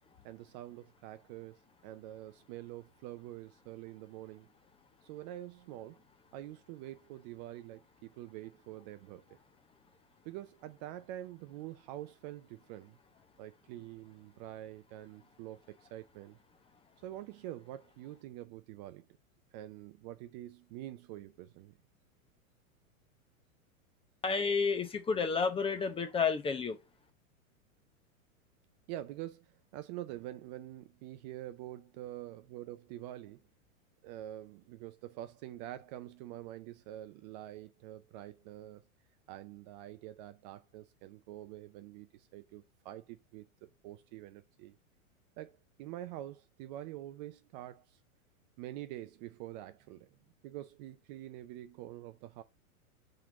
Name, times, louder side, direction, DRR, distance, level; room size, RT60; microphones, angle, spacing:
voice 1, 0.2-4.5 5.0-6.0 6.3-9.4 10.2-13.0 13.4-16.4 17.0-19.1 19.5-21.7 28.9-33.4 34.0-38.8 39.3-44.8 45.4-48.0 48.6-50.1 50.4-52.4, right 14 dB, 35° right, 0.4 m, -46 dB
voice 2, 24.2-26.8, left 5 dB, 15° left, 0.6 m, -31 dB
5.7 x 3.9 x 4.6 m
hypercardioid pair, 115°, 43 cm